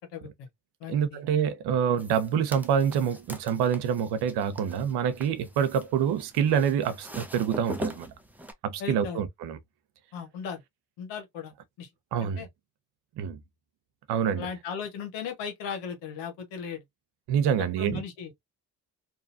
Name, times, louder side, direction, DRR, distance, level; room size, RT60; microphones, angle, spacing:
voice 1, 0.1-0.5 0.8-1.2 8.8-9.2 10.1-10.6 11.0-11.9 12.2-12.5 14.4-16.8 17.6-18.3, left 7 dB, 85° left, 1.0 m, -37 dB
voice 2, 0.9-8.1 8.6-9.6 12.1-12.4 13.2-13.4 14.1-14.5 17.3-18.0, right 8 dB, 70° right, 0.7 m, -26 dB
sound 1, 2.0-8.5, right 1 dB, 5° right, 0.7 m, -42 dB
2.6 x 2.3 x 2.5 m
hypercardioid pair, 45°, 41 cm